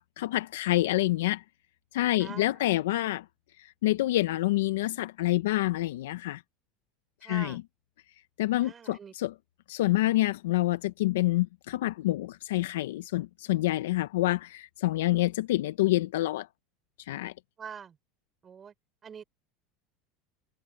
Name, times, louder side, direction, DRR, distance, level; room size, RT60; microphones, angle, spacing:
voice 1, 0.0-1.4 1.9-3.2 3.6-6.4 7.2-7.6 8.4-9.3 9.7-16.5 17.0-17.3, left 17 dB, 85° left, 0.6 m, -27 dB
voice 2, 2.2-2.6 7.2-7.6 8.6-9.1 17.6-18.0 18.4-18.7 19.0-19.2, right 7 dB, 30° right, 5.0 m, -44 dB
supercardioid pair, 110°, 0 cm